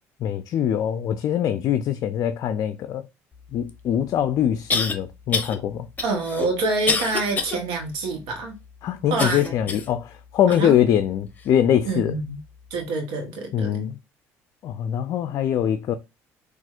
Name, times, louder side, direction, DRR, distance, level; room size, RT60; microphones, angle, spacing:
voice 1, 0.2-3.0 3.5-5.9 8.8-12.1 13.5-14.0 14.6-16.0, left 10 dB, 55° left, 0.4 m, -23 dB
sound 1, 3.7-3.8 4.7-5.0 5.3-5.6 6.0-7.6 8.0-8.1 9.2-9.9 10.5-10.6 11.4-11.5, left 4 dB, 25° left, 0.9 m, -26 dB
voice 2, 6.0-8.5 9.1-9.7 10.5-10.8 11.8-12.4 12.7-13.9, right 3 dB, 80° right, 1.0 m, -27 dB
4.2 x 2.4 x 2.3 m
supercardioid pair, 80°, 7 cm